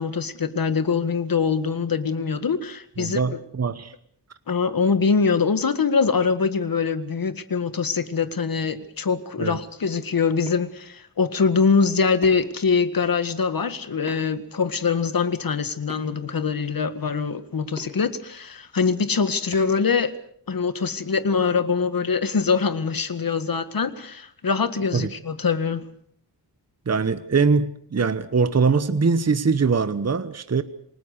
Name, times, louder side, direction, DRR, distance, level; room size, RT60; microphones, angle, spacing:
voice 1, 0.0-3.2 4.5-20.1 20.5-25.9, left 5 dB, 55° left, 11 dB, 1.9 m, -23 dB
voice 2, 3.0-3.9 9.4-9.6 24.9-25.1 26.9-30.6, right 5 dB, 40° right, 12 dB, 1.1 m, -22 dB
sound 1, 10.2-10.6 12.2-12.6 14.1-14.4 15.9-16.3 17.8-17.9 19.5-19.8, right 1 dB, 15° right, 6.8 m, -41 dB
28.0 x 19.5 x 6.7 m, 0.63 s
wide cardioid pair, 115°, 41 cm